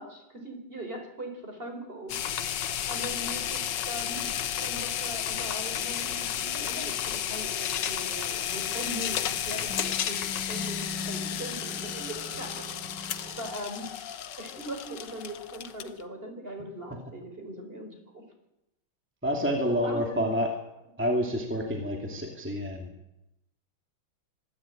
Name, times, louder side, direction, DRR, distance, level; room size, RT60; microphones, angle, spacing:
voice 1, 0.0-2.2 2.9-4.3 4.6-10.2 10.5-12.6 13.4-13.9 14.4-17.9 18.1-18.2 19.8-20.3, right 1 dB, 25° right, 4 dB, 4.7 m, -40 dB
sound 1, 2.1-16.0, left 9 dB, 65° left, 1.5 m, -32 dB
sound 2, 8.5-13.5, left 2 dB, 60° right, 2.9 m, -41 dB
voice 2, 19.2-20.5 21.0-22.9, equal, 5° right, 2 dB, 2.5 m, -28 dB
25.0 x 11.5 x 9.0 m, 0.88 s
omnidirectional pair, 2.2 m